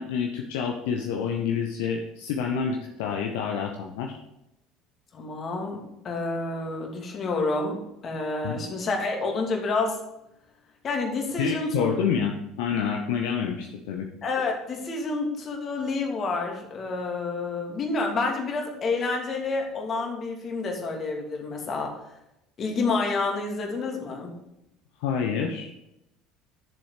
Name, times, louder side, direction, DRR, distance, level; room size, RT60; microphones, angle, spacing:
voice 1, 0.0-4.2 8.4-8.6 11.4-14.1 25.0-25.7, left 7 dB, 65° left, 2 dB, 0.9 m, -28 dB
voice 2, 5.1-10.0 10.8-11.9 14.2-22.0 22.6-24.4, left 3 dB, 40° left, 1 dB, 2.6 m, -29 dB
10.5 x 7.1 x 5.0 m, 0.86 s
figure-of-eight pair, 60°, 0 cm